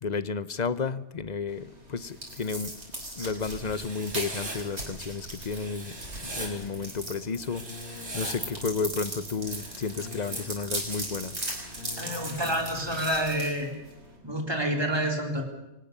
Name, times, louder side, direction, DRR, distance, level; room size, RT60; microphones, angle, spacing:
voice 1, 0.0-2.7 3.2-5.9 6.2-7.6 8.1-11.4, left 5 dB, 40° left, 14 dB, 0.9 m, -32 dB
sound 1, 1.5-14.2, right 1 dB, 60° right, 6.2 m, -39 dB
Writing, 3.6-4.6 5.5-6.5 7.4-8.3 9.4-10.5 11.5-12.5, right 2 dB, 90° right, 4.5 m, -41 dB
Keyboard (musical), 5.8-13.4, left 3 dB, 60° left, 7.6 m, -47 dB
voice 2, 12.0-13.7 14.2-15.4, right 1 dB, 20° right, 2 dB, 3.8 m, -28 dB
24.5 x 19.5 x 6.8 m, 0.93 s
omnidirectional pair, 1.3 m